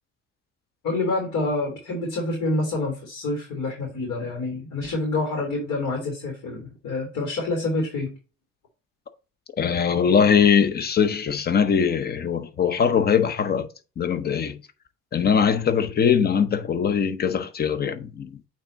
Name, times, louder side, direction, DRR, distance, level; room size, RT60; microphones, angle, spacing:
voice 1, 0.8-8.1, left 2 dB, 65° left, 3.2 m, -27 dB
voice 2, 9.6-14.6 15.1-18.4, left 7 dB, 30° left, 0.8 m, -21 dB
8.8 x 3.6 x 3.9 m
cardioid pair, 115°, 30 cm